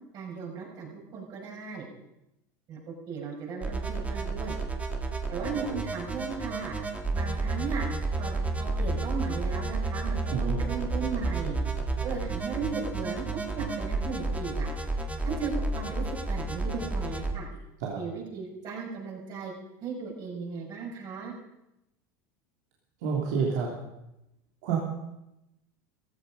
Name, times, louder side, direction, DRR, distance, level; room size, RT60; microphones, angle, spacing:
voice 1, 0.1-1.9 2.7-4.6 5.3-6.7 7.1-7.8 8.2-11.6 12.0-14.7 15.2-17.5 17.9-19.5 19.8-21.3, right 5 dB, 50° right, -1 dB, 6.3 m, -36 dB
sound 1, 3.6-17.3, right 3 dB, 15° right, 2.1 m, -31 dB
voice 2, 23.0-23.7 24.6-24.8, right 6 dB, 70° right, -3 dB, 3.1 m, -29 dB
16.0 x 14.0 x 5.3 m, 0.90 s
hypercardioid pair, 100°, 9 cm